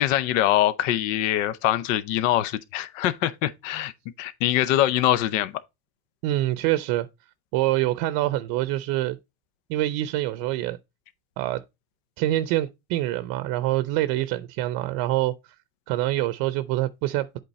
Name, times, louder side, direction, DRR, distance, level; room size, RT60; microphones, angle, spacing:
voice 1, 0.0-3.9 4.2-5.5, left 13 dB, 85° left, 0.7 m, -23 dB
voice 2, 6.2-7.1 7.5-9.2 9.7-10.8 11.4-11.6 12.2-15.5 15.9-17.4, right 15 dB, 65° right, 0.6 m, -25 dB
8.1 x 3.8 x 4.1 m
cardioid pair, 135°, 38 cm